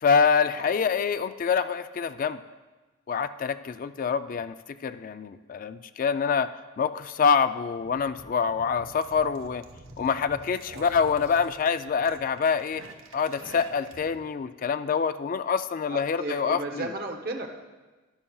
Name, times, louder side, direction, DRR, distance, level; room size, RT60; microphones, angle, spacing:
voice 1, 0.0-2.4 3.1-6.5 6.8-9.6 10.0-12.8 13.1-16.9, left 6 dB, 45° left, 12 dB, 0.3 m, -26 dB
voice 2, 0.5-0.9 10.7-10.9 15.9-17.6, right 2 dB, 50° right, 3 dB, 0.8 m, -35 dB
sound 1, 7.8-14.2, right 2 dB, 90° right, 1.0 m, -48 dB
13.0 x 11.0 x 2.3 m, 1.2 s
head